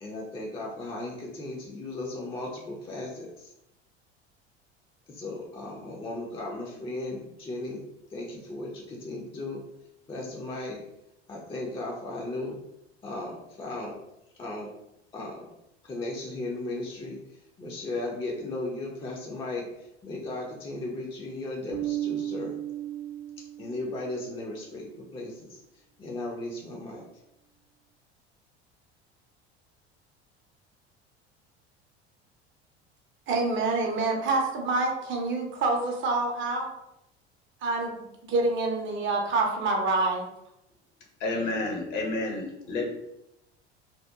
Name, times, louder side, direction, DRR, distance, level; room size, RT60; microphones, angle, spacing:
voice 1, 0.0-3.5 5.1-7.8 8.1-9.6 10.1-10.8 11.3-12.6 13.0-14.0 14.4-14.7 15.1-15.5 15.8-17.2 17.6-19.7 20.0-22.5 23.6-25.6 26.0-27.1, left 2 dB, 15° left, -2 dB, 0.4 m, -36 dB
Bass guitar, 21.7-24.1, right 12 dB, 75° right, 0.6 m, -34 dB
voice 2, 33.3-36.7 37.6-40.2, right 3 dB, 35° right, 1 dB, 0.6 m, -27 dB
voice 3, 41.2-42.8, left 2 dB, 60° left, 0 dB, 0.8 m, -30 dB
2.8 x 2.1 x 2.3 m, 0.85 s
hypercardioid pair, 70°, 33 cm